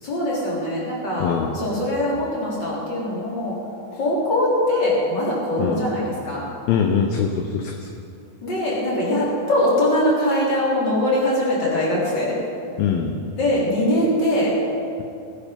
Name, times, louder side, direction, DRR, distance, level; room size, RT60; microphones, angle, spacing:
voice 1, 0.0-3.6 3.9-6.5 8.4-12.4 13.4-14.6, left 1 dB, 25° left, -6 dB, 3.9 m, -22 dB
voice 2, 1.2-1.6 5.6-5.8 6.7-7.9 12.8-13.2, left 7 dB, 75° left, 4 dB, 2.4 m, -22 dB
18.5 x 10.0 x 5.3 m, 2.5 s
omnidirectional pair, 4.9 m